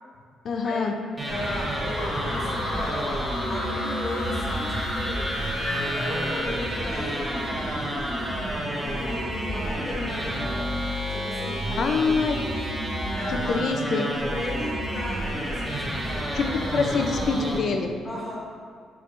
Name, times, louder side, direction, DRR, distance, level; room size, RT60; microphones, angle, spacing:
voice 1, 0.4-0.9 11.7-12.4 13.5-14.1 16.3-17.9, left 4 dB, 60° left, 4 dB, 0.5 m, -25 dB
voice 2, 1.2-5.3 5.7-7.5 8.8-10.8 11.1-11.7 13.1-16.3 18.0-18.4, left 1 dB, 20° left, -5 dB, 1.3 m, -35 dB
sound 1, 1.2-17.6, equal, 15° right, 1.3 m, -30 dB
sound 2, 1.9-6.5, left 1 dB, 80° left, 1.4 m, -33 dB
4.7 x 4.4 x 2.5 m, 2.1 s
cardioid pair, 90°, 0 cm